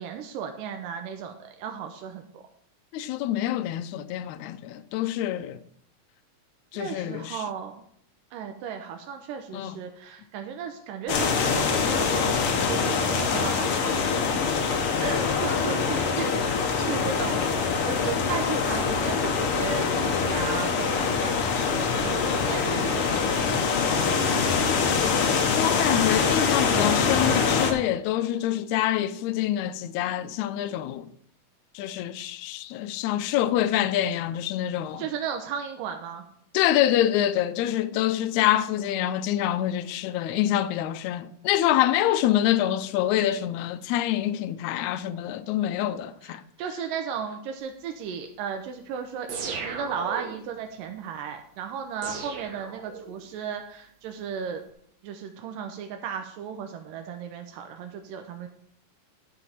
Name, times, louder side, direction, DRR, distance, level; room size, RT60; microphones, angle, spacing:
voice 1, 0.0-2.4 6.7-7.8 8.3-14.0 14.3-14.4 15.0-24.9 35.0-36.2 46.3-54.6 55.0-58.5, right 7 dB, 85° right, 2.4 m, -35 dB
voice 2, 2.9-5.6 6.7-7.4 9.5-9.8 25.6-31.1 31.7-35.0 36.5-46.4, left 12 dB, 80° left, 1.7 m, -26 dB
sound 1, 11.1-27.7, left 5 dB, 65° left, 1.5 m, -24 dB
sound 2, 49.3-50.5 52.0-53.3, right 5 dB, 70° right, 1.1 m, -36 dB
10.5 x 5.0 x 5.7 m
omnidirectional pair, 3.8 m